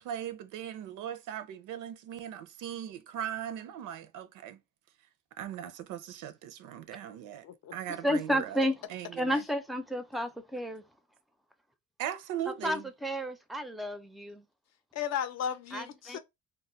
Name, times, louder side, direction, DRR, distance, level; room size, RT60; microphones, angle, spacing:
voice 1, 0.0-4.6 5.4-7.4 7.7-8.6 8.9-9.4 12.0-12.8, right 10 dB, 85° right, 0.5 m, -39 dB
voice 2, 8.0-8.8 9.1-10.8 12.5-14.5 15.7-16.2, equal, ahead, 0.4 m, -32 dB
voice 3, 14.9-16.2, left 8 dB, 60° left, 0.6 m, -35 dB
2.2 x 2.0 x 3.7 m
cardioid pair, 90°, 30 cm